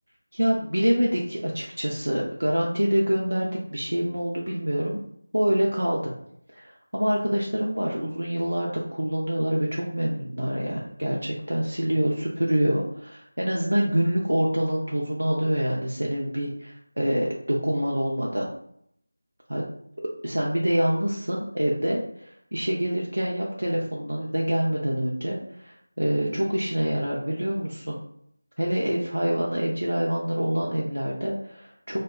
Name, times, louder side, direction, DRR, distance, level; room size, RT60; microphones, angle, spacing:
voice 1, 0.3-5.0 5.3-6.1 6.6-18.5 19.5-19.6 20.2-28.0 28.6-32.0, equal, 70° right, -3 dB, 0.5 m, -26 dB
2.6 x 2.2 x 2.2 m, 0.70 s
figure-of-eight pair, 165°, 0 cm